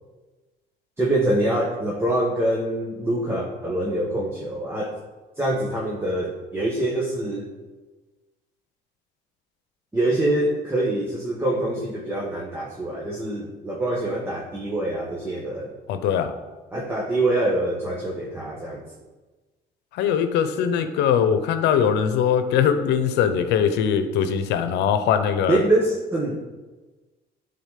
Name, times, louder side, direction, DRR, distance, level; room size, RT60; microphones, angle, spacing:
voice 1, 1.0-5.0 5.4-7.5 9.9-15.7 16.7-18.8 25.5-26.4, right 1 dB, 15° right, -3 dB, 1.3 m, -25 dB
voice 2, 15.9-16.3 19.9-25.6, left 8 dB, 85° left, 9 dB, 0.8 m, -21 dB
11.0 x 4.0 x 5.8 m, 1.2 s
cardioid pair, 110°, 17 cm